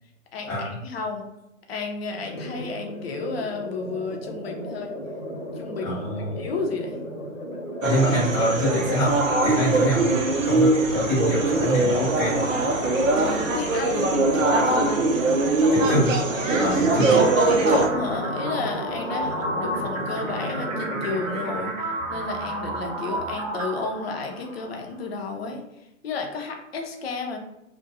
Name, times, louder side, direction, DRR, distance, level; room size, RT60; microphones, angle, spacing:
voice 1, 0.3-1.2 1.7-4.9 5.6-7.0 13.2-15.0 17.4-25.6 26.0-27.4, left 3 dB, 50° left, 3 dB, 0.6 m, -32 dB
sound 1, 2.2-21.6, equal, 80° left, 1.0 m, -35 dB
voice 2, 5.8-6.3 7.8-9.1 9.4-10.1 10.4-12.4 15.7-16.1 16.6-17.1, equal, 5° left, -14 dB, 0.3 m, -25 dB
sound 2, 7.8-17.9, right 2 dB, 75° right, 0.6 m, -22 dB
sound 3, 16.9-24.8, right 1 dB, 30° right, 0.7 m, -32 dB
2.4 x 2.2 x 2.7 m, 0.87 s
figure-of-eight pair, 120°, 39 cm